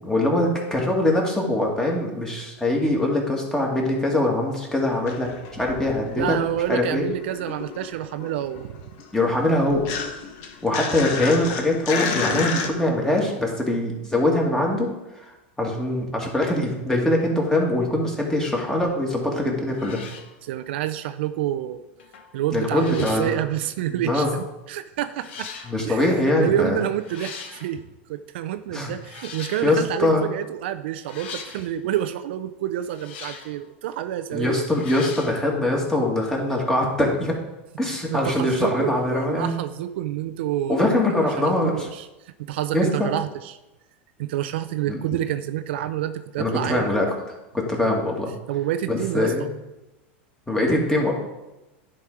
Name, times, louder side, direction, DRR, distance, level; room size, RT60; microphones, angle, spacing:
voice 1, 0.0-6.4 6.7-7.0 9.1-9.8 10.6-14.9 15.2-15.3 15.6-20.0 22.5-23.3 23.9-24.3 25.6-26.8 28.7-28.9 29.6-30.2 34.3-37.4 37.8-39.6 40.7-41.9 42.7-43.1 44.9-45.0 46.4-47.1 47.5-48.3 48.9-49.5 50.5-51.1, left 1 dB, 10° left, -1 dB, 2.1 m, -23 dB
sound 1, 4.9-6.8 7.1-12.7, left 5 dB, 55° left, 1.3 m, -31 dB
voice 2, 6.2-8.8 20.4-21.8 22.3-25.5 25.8-27.8 28.1-34.7 38.1-43.6 44.2-46.9 48.5-49.3, right 12 dB, 70° right, 11 dB, 0.5 m, -28 dB
sound 2, 19.2-19.4 19.7-20.3 22.0-22.3 22.6-23.3 24.3-24.4 25.1-25.7 26.9-27.7 29.0-29.8 31.0-31.7 32.8-33.6 34.7-35.4, left 6 dB, 75° left, 1.2 m, -40 dB
10.0 x 4.4 x 4.9 m, 1.0 s
hypercardioid pair, 105°, 6 cm